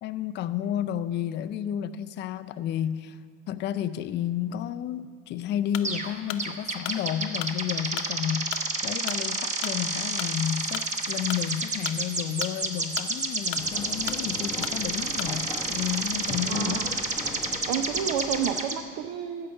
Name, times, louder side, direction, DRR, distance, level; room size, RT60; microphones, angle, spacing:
voice 1, 0.0-3.2 3.5-16.9, left 10 dB, 30° left, 10 dB, 0.4 m, -31 dB
sound 1, 5.7-15.5, left 14 dB, 70° left, 0.8 m, -38 dB
sound 2, 5.8-6.1 6.4-18.8, right 3 dB, 20° right, 1.0 m, -30 dB
sound 3, 13.6-18.6, left 3 dB, 5° left, 0.9 m, -40 dB
voice 2, 16.5-16.9 17.7-19.5, right 8 dB, 55° right, 8 dB, 0.7 m, -30 dB
15.0 x 5.7 x 7.8 m, 2.1 s
supercardioid pair, 115°, 37 cm